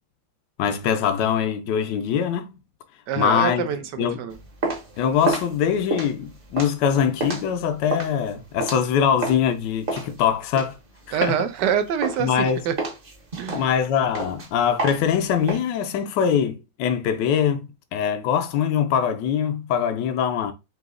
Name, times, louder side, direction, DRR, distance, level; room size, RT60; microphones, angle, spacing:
voice 1, 0.6-2.6 3.2-3.7 4.0-4.2 5.0-10.8 11.1-11.3 12.2-12.6 13.5-17.7 17.9-20.5, left 8 dB, 70° left, 1.2 m, -23 dB
voice 2, 3.1-4.3 11.1-12.7 13.4-13.7, right 8 dB, 70° right, 1.2 m, -25 dB
sound 1, 4.3-9.5 9.9-11.7 12.0-12.4 12.8-15.6, right 2 dB, 35° right, 1.0 m, -30 dB
4.0 x 2.9 x 3.6 m
omnidirectional pair, 2.1 m